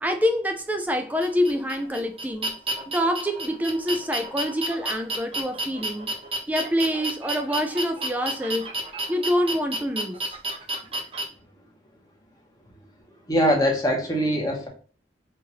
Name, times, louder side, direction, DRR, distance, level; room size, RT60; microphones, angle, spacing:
voice 1, 0.0-2.6 2.9-6.1 6.5-8.7 9.1-10.4, equal, 10° right, 0.3 m, -26 dB
sound 1, 1.2-11.2, right 1 dB, 30° right, 0.8 m, -31 dB
voice 2, 13.3-14.7, equal, 20° left, 1.0 m, -22 dB
4.6 x 2.5 x 2.9 m
head